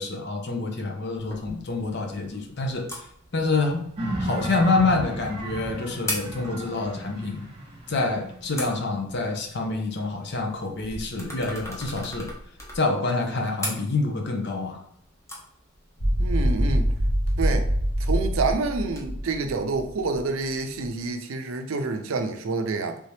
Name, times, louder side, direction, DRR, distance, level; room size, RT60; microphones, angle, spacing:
voice 1, 0.0-2.9 3.3-3.8 4.2-7.4 7.9-12.3 12.7-14.8, left 3 dB, 55° left, 2 dB, 0.6 m, -27 dB
sound 1, 1.1-19.0, left 1 dB, 15° left, 0.7 m, -41 dB
sound 2, 4.0-9.2, right 1 dB, 30° right, 1.0 m, -34 dB
sound 3, 16.0-20.2, equal, 85° left, 1.2 m, -24 dB
voice 2, 16.2-16.9 17.4-17.7 18.0-23.0, right 3 dB, 80° right, 6 dB, 0.5 m, -28 dB
3.4 x 2.8 x 3.3 m, 0.69 s
head